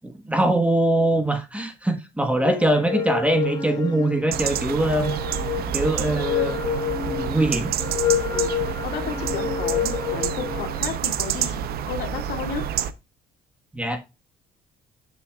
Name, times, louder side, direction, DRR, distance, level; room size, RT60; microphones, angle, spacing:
voice 1, 0.0-5.1 5.6-6.6 7.0-7.7 13.7-14.0, right 1 dB, 5° right, 1.2 m, -22 dB
voice 2, 2.4-2.7 8.3-8.5 8.8-12.6, left 7 dB, 75° left, 1.9 m, -33 dB
sound 1, 2.6-10.8, left 8 dB, 20° left, 2.8 m, -28 dB
sound 2, 4.3-12.9, right 10 dB, 65° right, 0.7 m, -28 dB
7.4 x 6.5 x 2.3 m
cardioid pair, 110°, 17 cm